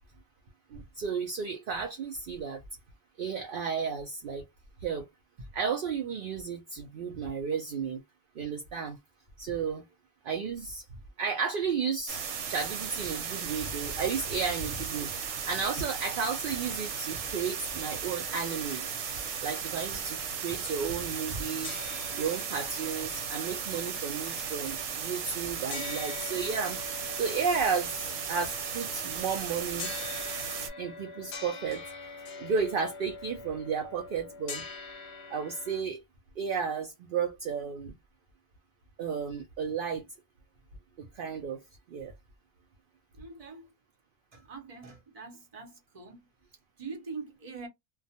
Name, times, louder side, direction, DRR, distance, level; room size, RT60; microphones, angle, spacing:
voice 1, 0.7-2.6 3.2-4.4 4.8-5.1 5.5-8.0 8.4-9.0 9.4-9.8 10.2-10.9 11.2-15.1 15.5-18.9 19.4-21.8 22.2-26.8 27.1-29.9 30.8-31.8 32.4-34.6 35.3-36.0 36.4-37.9 39.0-40.1 41.0-41.6 41.9-42.1, right 6 dB, 60° right, 0.6 m, -33 dB
sound 1, 12.1-30.7, right 7 dB, 85° right, 1.1 m, -36 dB
sound 2, 18.4-21.4 21.6-35.8, left 4 dB, 65° left, 0.8 m, -45 dB
voice 2, 43.1-43.7 44.3-47.7, right 4 dB, 35° right, 0.8 m, -44 dB
2.3 x 2.2 x 2.7 m
omnidirectional pair, 1.3 m